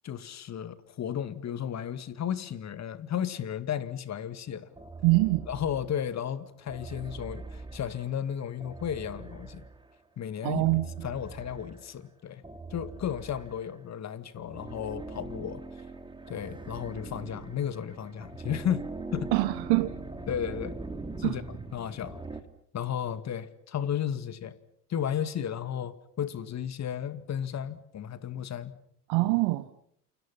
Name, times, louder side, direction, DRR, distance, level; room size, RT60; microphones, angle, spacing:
voice 1, 0.0-4.7 5.5-9.6 10.2-12.4 12.7-15.6 16.3-19.3 20.3-20.8 21.2-22.2 22.7-24.6 24.9-28.8, left 9 dB, 35° left, 13 dB, 2.1 m, -34 dB
sound 1, 4.8-6.1 6.7-9.9 10.5-11.9 12.4-13.9 14.4-22.4, right 3 dB, 10° right, 3.2 m, -42 dB
voice 2, 5.0-5.5 10.4-10.8 19.3-19.9 21.2-21.3 29.1-29.7, right 21 dB, 55° right, 13 dB, 1.2 m, -24 dB
29.0 x 28.5 x 5.7 m, 0.67 s
figure-of-eight pair, 70°, 46 cm